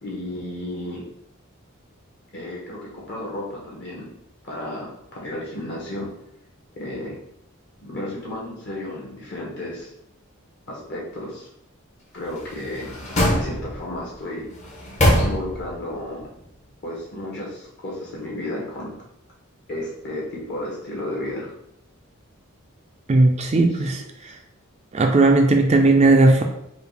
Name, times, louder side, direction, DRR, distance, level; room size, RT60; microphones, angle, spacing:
voice 1, 0.0-1.1 2.3-4.1 4.4-6.1 6.7-7.2 7.8-9.9 10.7-11.5 12.1-14.5 15.2-16.3 16.8-18.9 19.7-21.5 23.8-24.3, left 1 dB, 50° left, -4 dB, 1.4 m, -33 dB
sound 1, 12.3-14.0 14.5-15.8 16.2-16.3, equal, 30° left, 0.9 m, -23 dB
voice 2, 23.1-24.4 24.9-26.4, right 2 dB, 30° right, 4 dB, 0.3 m, -17 dB
4.7 x 2.4 x 3.3 m, 0.79 s
head